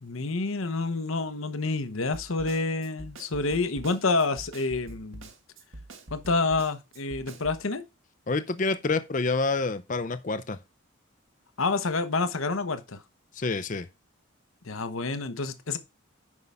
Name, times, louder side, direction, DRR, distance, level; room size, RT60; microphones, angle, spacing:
voice 1, 0.0-5.3 6.1-7.8 11.6-13.0 14.6-15.8, left 3 dB, 75° left, 1.0 m, -28 dB
Snare drum, 2.1-7.6, right 2 dB, 70° right, 1.9 m, -45 dB
voice 2, 8.3-10.6 13.3-13.9, left 3 dB, 35° left, 0.6 m, -28 dB
9.6 x 5.5 x 3.6 m
head